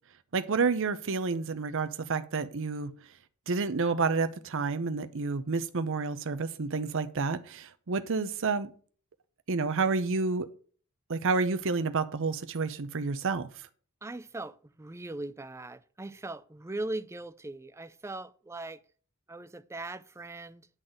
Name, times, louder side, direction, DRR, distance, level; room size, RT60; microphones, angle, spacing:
voice 1, 0.3-2.9 3.5-8.7 9.5-10.5 11.1-13.5, right 4 dB, 60° right, 0.7 m, -29 dB
voice 2, 14.0-18.8 19.3-20.7, right 2 dB, 10° right, 0.4 m, -40 dB
10.5 x 4.0 x 7.6 m
head